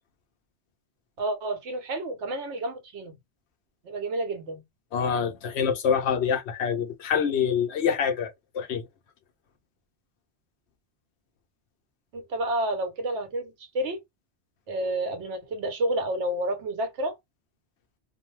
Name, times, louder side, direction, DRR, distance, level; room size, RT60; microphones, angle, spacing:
voice 1, 1.2-3.2 3.8-4.6 12.1-14.0 14.7-17.2, right 1 dB, 80° right, 1.1 m, -30 dB
voice 2, 4.9-8.8, left 7 dB, 70° left, 0.9 m, -26 dB
2.6 x 2.1 x 3.0 m
omnidirectional pair, 1.2 m